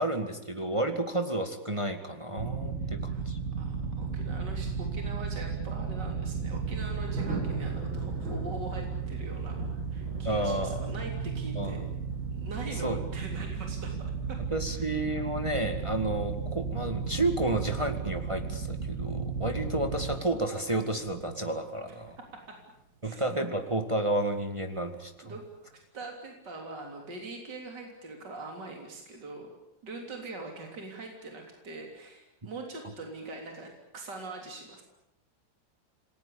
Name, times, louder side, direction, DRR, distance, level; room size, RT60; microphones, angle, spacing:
voice 1, 0.0-3.4 10.2-10.8 11.6-11.9 12.8-13.0 14.5-22.2 23.0-25.3, right 1 dB, 15° right, 6 dB, 2.0 m, -31 dB
sound 1, 2.4-20.1, right 5 dB, 35° right, 4.2 m, -34 dB
voice 2, 2.8-3.3 3.5-11.9 12.3-14.4 14.7-14.9 21.9-22.0 22.5-22.6 23.0-23.2 25.2-29.5 29.8-34.8, right 2 dB, 60° right, 2 dB, 4.0 m, -43 dB
Thunder, 6.5-25.3 25.7-25.8, right 2 dB, 90° right, 6.4 m, -45 dB
28.5 x 20.0 x 8.7 m, 0.82 s
omnidirectional pair, 2.1 m